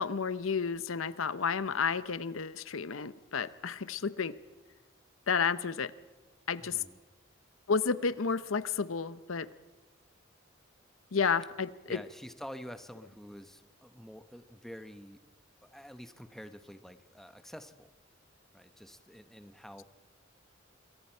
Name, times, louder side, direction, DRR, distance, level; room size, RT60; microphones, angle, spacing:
voice 1, 0.0-4.3 5.3-5.9 6.5-6.8 7.7-9.5 11.1-12.0, left 5 dB, 80° left, 15 dB, 0.8 m, -31 dB
voice 2, 6.6-7.0 11.9-15.2 15.6-17.9 18.5-19.8, equal, ahead, 9 dB, 0.9 m, -48 dB
26.5 x 23.5 x 4.5 m, 1.2 s
head